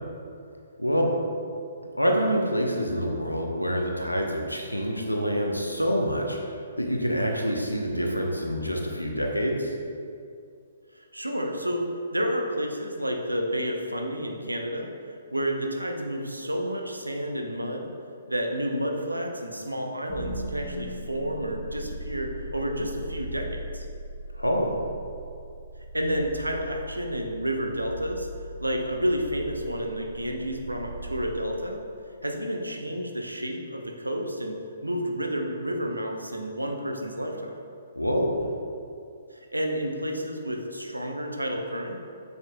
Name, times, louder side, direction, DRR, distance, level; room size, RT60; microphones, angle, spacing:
voice 1, 0.8-1.1 2.0-9.7 24.3-24.8 38.0-38.5, equal, 90° left, 1 dB, 0.9 m, -26 dB
voice 2, 10.9-14.9 15.3-17.9 18.3-23.9 25.9-28.3 28.6-31.8 32.2-34.6 34.8-37.5 39.3-42.0, equal, 85° right, 2 dB, 0.8 m, -30 dB
sound 1, 20.1-32.2, right 1 dB, 20° left, 1.4 m, -39 dB
7.3 x 6.7 x 2.3 m, 2.4 s
figure-of-eight pair, 125°, 0 cm